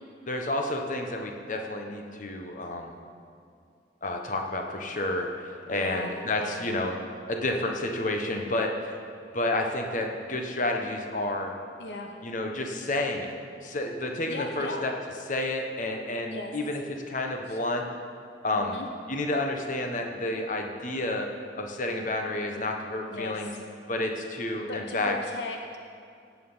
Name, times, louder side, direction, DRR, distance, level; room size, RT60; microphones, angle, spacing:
voice 1, 0.3-3.0 4.0-7.0 7.3-8.9 9.3-11.5 12.2-13.3 13.6-14.9 15.3-17.9 18.4-18.8 19.1-23.5 23.9-25.2, left 2 dB, 45° left, 3 dB, 1.2 m, -30 dB
voice 2, 5.7-6.1 6.4-6.7 11.8-12.2 14.2-14.9 16.3-16.5 17.5-17.6 18.5-18.9 23.1-23.6 24.6-25.8, left 2 dB, 70° left, 3 dB, 1.0 m, -37 dB
17.0 x 8.5 x 5.7 m, 2.4 s
head